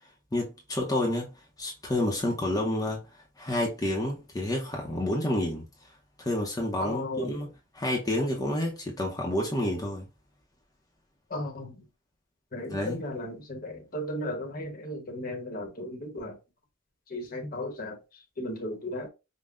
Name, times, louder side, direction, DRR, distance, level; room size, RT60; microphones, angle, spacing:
voice 1, 0.3-1.3 1.6-3.1 3.4-5.6 6.2-7.5 7.7-10.0 12.7-13.0, left 1 dB, 20° left, 0.6 m, -29 dB
voice 2, 6.8-7.4 11.3-11.9 12.5-16.4 17.1-19.1, left 1 dB, 45° left, 0.9 m, -35 dB
5.4 x 2.1 x 2.4 m
head